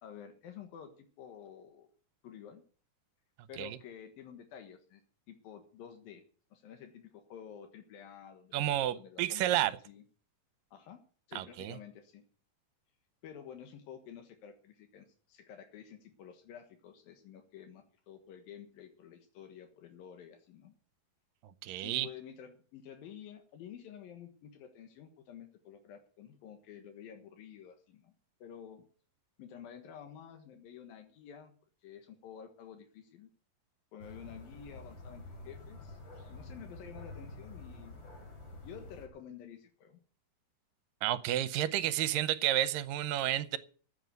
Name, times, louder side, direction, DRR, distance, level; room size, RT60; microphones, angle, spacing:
voice 1, 0.0-1.9 2.2-2.6 3.5-5.0 5.3-6.2 6.5-8.7 8.9-10.0 10.7-11.0 11.3-12.2 13.2-20.7 21.8-28.1 28.4-28.8 29.4-31.5 31.8-33.3 33.9-36.0 36.3-38.0 38.6-40.0, left 8 dB, 85° left, 3.3 m, -50 dB
voice 2, 8.5-9.7 11.4-11.8 21.6-22.1 41.0-43.6, right 12 dB, 80° right, 2.4 m, -31 dB
sound 1, 34.0-39.1, left 2 dB, 35° left, 3.8 m, -49 dB
14.5 x 8.2 x 7.9 m
omnidirectional pair, 4.0 m